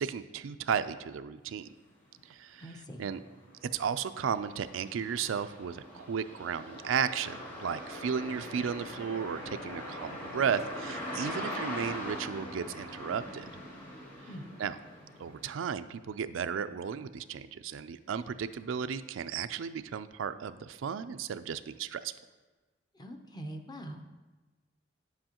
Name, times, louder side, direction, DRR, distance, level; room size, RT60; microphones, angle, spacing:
voice 1, 0.0-1.7 2.3-2.7 3.0-3.2 3.6-13.5 14.6-14.8 15.2-22.2, right 7 dB, 85° right, 11 dB, 0.4 m, -34 dB
sound 1, 2.2-2.3 2.7-15.6, left 1 dB, 45° left, 2.4 m, -42 dB
voice 2, 2.6-3.0 14.3-14.4 22.9-24.0, right 1 dB, 20° left, 5 dB, 0.6 m, -43 dB
9.9 x 7.7 x 2.9 m, 1.3 s
head